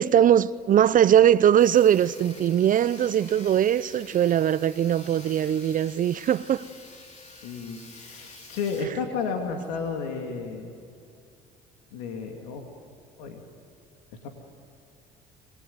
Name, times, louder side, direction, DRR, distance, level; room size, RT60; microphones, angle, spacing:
voice 1, 0.0-6.6, right 10 dB, 45° right, 0.6 m, -20 dB
Sawing, 1.6-8.9, left 2 dB, 35° left, 5.2 m, -48 dB
voice 2, 7.4-10.8 11.9-12.6 13.2-13.4 14.2-14.3, left 5 dB, 90° left, 2.4 m, -32 dB
27.0 x 19.5 x 9.5 m
supercardioid pair, 80°, 19 cm